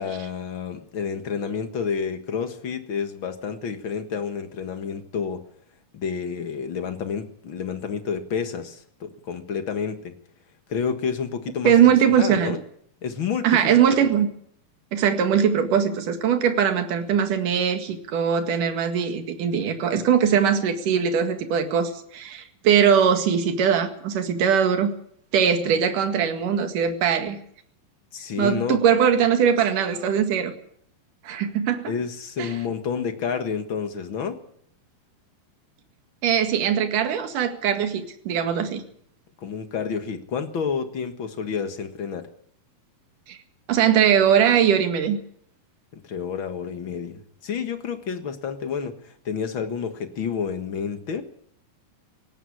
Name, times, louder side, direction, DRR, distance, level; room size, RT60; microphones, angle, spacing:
voice 1, 0.0-5.5 5.9-10.2 10.7-11.8 12.2-12.6 13.0-13.7 28.1-28.8 31.9-34.4 39.4-42.3 45.9-51.2, left 6 dB, 45° left, 8 dB, 1.7 m, -29 dB
voice 2, 11.6-12.6 13.4-14.3 14.9-24.9 25.3-27.4 28.4-30.5 31.2-31.9 32.4-32.5 36.2-38.8 43.3-43.4 43.7-45.2, right 8 dB, 65° right, 7 dB, 3.4 m, -21 dB
18.5 x 14.5 x 9.7 m, 0.64 s
omnidirectional pair, 4.1 m